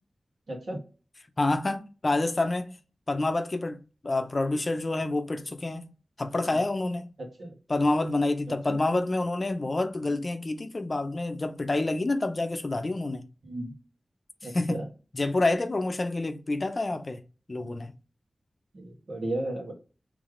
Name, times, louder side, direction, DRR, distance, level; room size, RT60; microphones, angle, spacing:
voice 1, 0.5-0.8 7.4-7.5 8.5-8.8 13.4-13.7 14.4-14.8 17.6-17.9 18.7-19.7, right 1 dB, 85° right, 1.7 m, -35 dB
voice 2, 1.4-2.7 3.1-5.9 6.2-7.1 7.7-13.3 14.4-14.8 15.1-17.2 17.5-17.9, left 2 dB, 45° left, 0.5 m, -28 dB
3.4 x 3.2 x 3.7 m
wide cardioid pair, 70°, 0 cm